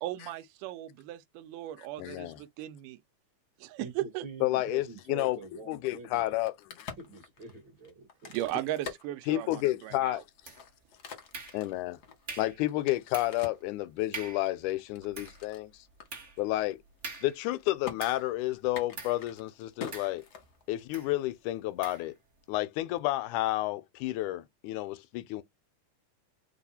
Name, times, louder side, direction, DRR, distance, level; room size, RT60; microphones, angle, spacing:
voice 1, 0.0-3.0 3.6-4.2 8.3-10.2, right 15 dB, 90° right, 2.1 m, -37 dB
voice 2, 2.0-2.4 4.4-5.4 5.7-6.9 9.3-10.2 11.5-12.0 12.4-15.8 16.4-16.8 17.2-20.2 20.7-22.1 22.5-25.4, left 16 dB, 80° left, 1.9 m, -31 dB
voice 3, 3.8-6.4 7.0-8.5, right 3 dB, 50° right, 1.7 m, -46 dB
Crack, 6.3-9.9 10.4-13.7 14.3-15.6 16.0-16.1 16.4-16.7 17.0-17.5 17.8-18.0 18.6-20.9, left 6 dB, 60° left, 1.0 m, -45 dB
sound 1, 10.4-10.9 11.3-11.9 12.3-12.6 13.1-13.5 13.8-13.9 14.1-14.5 15.0-18.4 18.9-19.3 19.9-20.5 20.9-21.2 21.8-22.1, right 4 dB, 65° right, 0.7 m, -44 dB
4.8 x 2.3 x 4.1 m
omnidirectional pair, 3.6 m